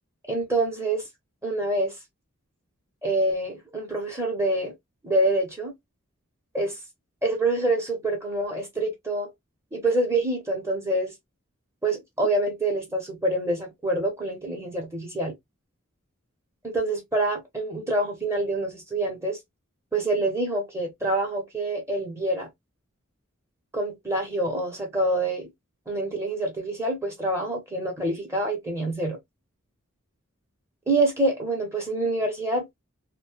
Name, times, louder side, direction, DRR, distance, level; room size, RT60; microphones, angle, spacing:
voice 1, 0.3-1.0 1.4-2.0 3.0-4.7 5.0-5.7 6.5-6.8 7.2-9.3 9.7-11.1 11.8-15.3 16.6-19.4 19.9-22.5 23.7-25.5 25.9-29.2 30.9-32.7, right 2 dB, 15° right, 0.8 m, -26 dB
2.6 x 2.2 x 3.0 m
head